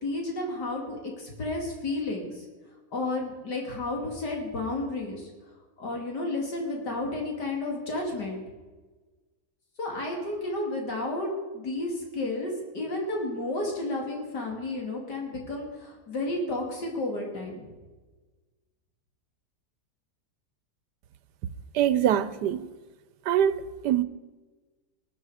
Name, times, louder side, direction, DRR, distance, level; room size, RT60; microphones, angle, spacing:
voice 1, 0.0-2.4 2.9-5.3 5.8-8.4 9.8-17.6, left 2 dB, 85° left, 3.1 m, -32 dB
voice 2, 21.7-22.7 23.3-24.0, right 10 dB, 85° right, 1.3 m, -24 dB
19.5 x 11.0 x 4.9 m
omnidirectional pair, 1.7 m